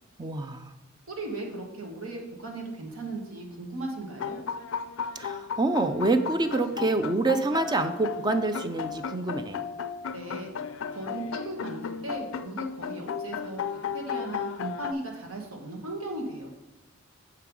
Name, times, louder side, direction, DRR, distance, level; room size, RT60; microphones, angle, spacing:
voice 1, 0.2-0.7 5.2-9.6, right 2 dB, 20° right, 9 dB, 0.4 m, -27 dB
voice 2, 1.1-4.4 10.1-10.5 10.9-16.5, right 2 dB, 80° right, 1 dB, 1.4 m, -37 dB
sound 1, 4.1-14.9, left 7 dB, 65° left, 0.4 m, -35 dB
6.7 x 5.3 x 4.7 m, 0.99 s
head